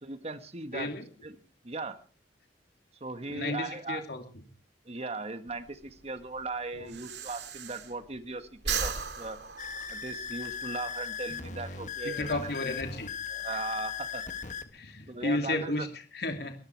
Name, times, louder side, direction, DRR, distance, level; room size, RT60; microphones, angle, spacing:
voice 1, 0.0-0.9 1.2-1.3 1.6-2.0 3.0-4.0 4.8-9.4 9.9-12.7 13.3-14.2 15.1-15.9, right 3 dB, 35° right, 10 dB, 1.5 m, -38 dB
voice 2, 0.7-1.0 3.3-4.2 6.7-6.9 12.0-13.1 13.5-13.6 14.7-16.5, left 2 dB, 60° left, 5 dB, 2.7 m, -33 dB
Breathing, 5.5-8.2 8.5-10.5, right 6 dB, 70° right, 2.4 m, -36 dB
sound 1, 9.6-14.6, left 7 dB, 45° left, 1.5 m, -38 dB
22.0 x 13.5 x 4.6 m, 0.38 s
head